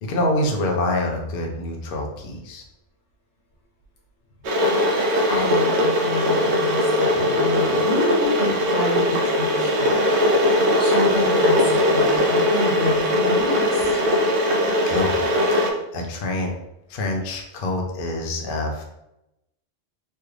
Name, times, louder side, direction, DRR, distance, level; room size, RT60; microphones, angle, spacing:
voice 1, 0.0-2.6 14.4-14.6 14.9-15.2 15.6-16.5 16.9-18.8, left 1 dB, 55° left, 1 dB, 0.7 m, -26 dB
Water / Boiling, 4.4-15.7, left 1 dB, 70° right, 0.9 m, -20 dB
voice 2, 5.3-10.0 10.8-14.0, left 2 dB, 85° left, -3 dB, 1.5 m, -28 dB
3.3 x 2.3 x 3.1 m, 0.87 s
omnidirectional pair, 1.3 m